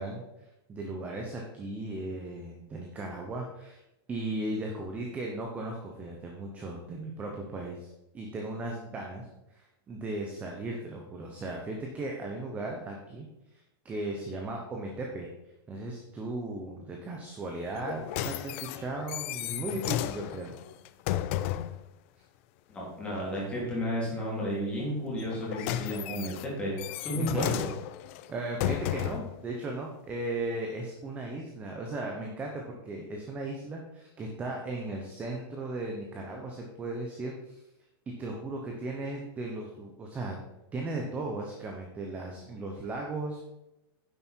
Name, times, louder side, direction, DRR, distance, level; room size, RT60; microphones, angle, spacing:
voice 1, 0.0-3.8 4.1-13.3 13.5-13.6 13.8-15.3 15.7-20.5 27.1-27.5 28.3-37.6 38.1-40.4 40.7-43.4, right 2 dB, 10° right, 1 dB, 0.8 m, -36 dB
sound 1, 17.7-21.8 25.2-29.4 30.1-30.2, left 13 dB, 30° left, 0.3 m, -34 dB
voice 2, 22.7-27.7, equal, 10° left, -6 dB, 3.3 m, -32 dB
10.0 x 7.5 x 4.5 m, 0.91 s
supercardioid pair, 175°, 13 cm